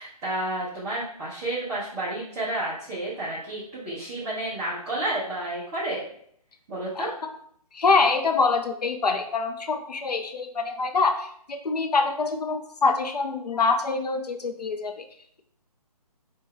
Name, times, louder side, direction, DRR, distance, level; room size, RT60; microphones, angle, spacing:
voice 1, 0.0-6.1 6.7-7.1, right 1 dB, 5° right, -10 dB, 0.4 m, -31 dB
voice 2, 7.7-15.0, left 4 dB, 85° left, 5 dB, 0.5 m, -25 dB
4.2 x 2.2 x 3.5 m, 0.64 s
figure-of-eight pair, 140°, 20 cm